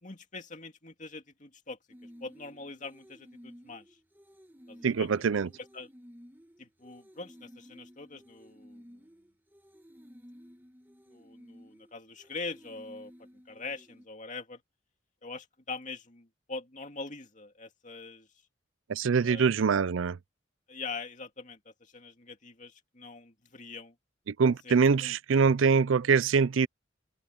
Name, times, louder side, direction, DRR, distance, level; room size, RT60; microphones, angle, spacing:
voice 1, 0.0-4.0 4.7-5.1 5.7-5.9 6.6-9.1 11.1-13.1 13.5-14.6 15.2-18.3 19.2-19.5 20.7-23.9 24.6-24.7 25.0-25.2, left 3 dB, 40° left, 2.5 m, -43 dB
sound 1, 1.9-14.1, equal, 10° right, 1.4 m, -54 dB
voice 2, 4.8-5.5 18.9-20.2 24.3-26.7, right 5 dB, 90° right, 0.5 m, -24 dB
head